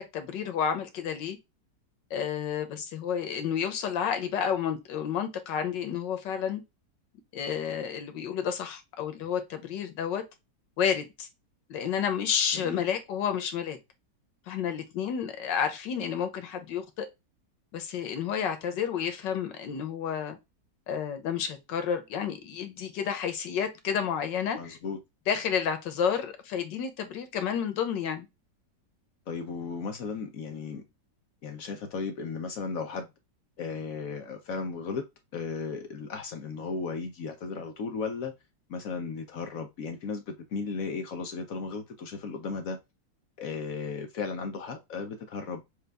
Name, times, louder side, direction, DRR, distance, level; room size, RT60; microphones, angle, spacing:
voice 1, 0.0-1.4 2.1-6.6 7.3-10.2 10.8-11.3 11.7-13.8 14.5-17.1 17.7-20.4 20.9-24.8 25.3-28.3, left 8 dB, 85° left, 1.6 m, -30 dB
voice 2, 24.6-25.0 29.3-30.8 31.4-33.1 33.6-35.0 35.3-38.3 38.7-42.8 43.4-45.7, left 5 dB, 60° left, 1.0 m, -35 dB
6.5 x 2.4 x 3.4 m
omnidirectional pair, 1.9 m